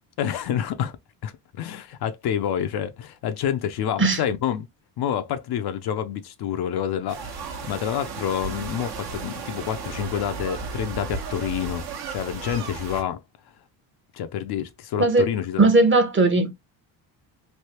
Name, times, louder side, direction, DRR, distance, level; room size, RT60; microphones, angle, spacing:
voice 1, 0.2-1.0 1.2-4.7 5.0-13.2 14.1-15.7, left 9 dB, 55° left, 0.6 m, -28 dB
sound 1, 7.1-13.0, right 5 dB, 55° right, 1.1 m, -34 dB
voice 2, 15.6-16.5, right 2 dB, 25° right, 0.9 m, -18 dB
3.3 x 2.7 x 2.8 m
supercardioid pair, 80°, 47 cm